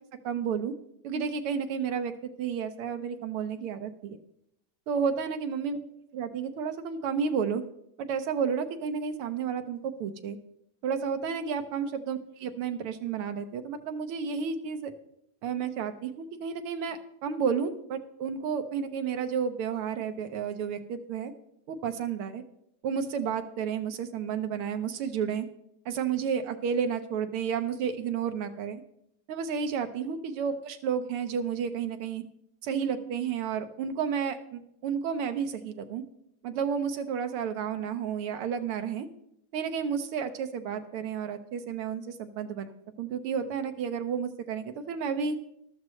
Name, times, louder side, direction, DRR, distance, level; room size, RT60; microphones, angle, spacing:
voice 1, 0.2-0.7 1.0-4.2 4.9-5.8 6.1-7.6 8.0-10.4 10.8-14.9 15.4-21.3 21.7-22.4 22.8-25.5 25.9-28.8 29.3-32.2 32.6-36.0 36.4-39.1 39.5-42.7 43.0-45.4, right 7 dB, 85° right, 8 dB, 1.9 m, -31 dB
14.0 x 12.5 x 3.2 m, 0.77 s
omnidirectional pair, 2.4 m